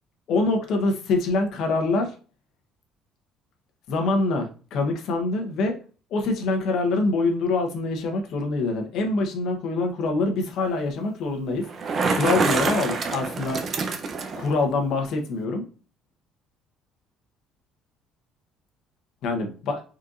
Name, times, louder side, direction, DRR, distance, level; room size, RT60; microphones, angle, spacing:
voice 1, 0.3-2.1 3.9-5.7 6.1-11.6 12.1-13.6 14.4-15.6 19.2-19.8, left 3 dB, 65° left, 4 dB, 1.0 m, -25 dB
Bicycle, 11.6-14.5, right 4 dB, 40° right, 0.7 m, -26 dB
4.3 x 3.9 x 2.5 m, 0.38 s
cardioid pair, 105°, 0 cm